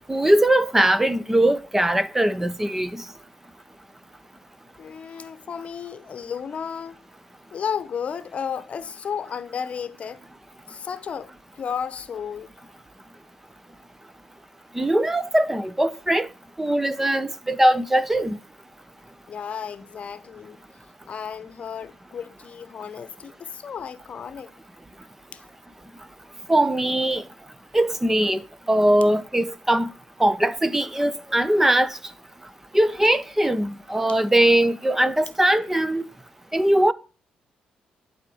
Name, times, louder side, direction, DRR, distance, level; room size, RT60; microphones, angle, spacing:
voice 1, 0.1-3.0 14.7-16.3 16.6-18.4 26.5-27.2 27.7-28.4 28.7-29.9 30.2-32.0 32.7-36.0 36.5-36.9, right 1 dB, 10° right, 0.8 m, -20 dB
voice 2, 4.8-7.0 7.5-10.2 10.7-12.6 19.3-20.6 21.1-24.5 25.3-25.4, left 7 dB, 50° left, 0.9 m, -33 dB
11.5 x 5.0 x 7.1 m
cardioid pair, 80°, 3 cm